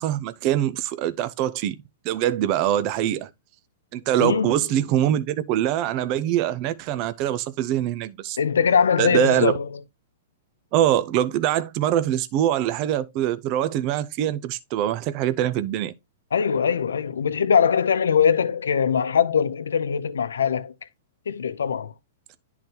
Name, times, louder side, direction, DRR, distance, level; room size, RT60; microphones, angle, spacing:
voice 1, 0.0-1.8 2.0-3.3 3.9-8.4 9.0-9.5 10.7-15.9, right 12 dB, 40° right, 0.6 m, -23 dB
voice 2, 4.2-4.6 8.4-9.7 16.3-20.7 21.3-21.9, left 7 dB, 90° left, 0.6 m, -21 dB
10.5 x 3.9 x 2.8 m
hypercardioid pair, 135°, 0 cm